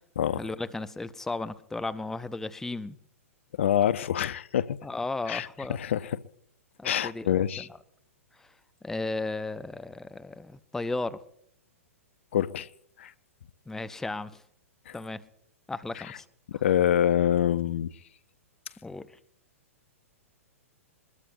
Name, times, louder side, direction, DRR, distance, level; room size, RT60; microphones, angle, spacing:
voice 1, 0.4-3.0 4.8-5.8 6.8-7.7 8.4-8.5 8.8-11.2 13.7-14.4 14.9-15.2 15.7-16.2 18.8-19.2, left 2 dB, 5° left, 0.7 m, -35 dB
voice 2, 3.6-4.8 5.3-6.2 6.8-7.7 12.3-12.7 13.0-13.1 14.9-15.0 16.0-16.2 16.6-17.9, left 10 dB, 60° left, 0.7 m, -26 dB
22.5 x 21.0 x 2.7 m
figure-of-eight pair, 110°, 8 cm